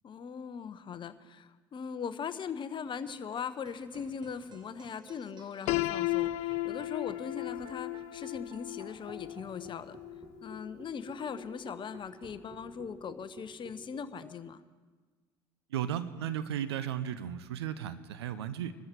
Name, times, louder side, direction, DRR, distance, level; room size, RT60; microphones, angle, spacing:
voice 1, 0.0-10.0 10.4-14.6, left 6 dB, 35° left, 13 dB, 0.9 m, -40 dB
sound 1, 2.8-14.4, right 4 dB, 35° right, 1.5 m, -54 dB
Piano, 5.7-11.5, left 17 dB, 60° left, 0.5 m, -35 dB
voice 2, 15.7-18.7, right 10 dB, 80° right, 12 dB, 0.8 m, -35 dB
22.5 x 13.0 x 4.6 m, 1.4 s
hypercardioid pair, 65°, 13 cm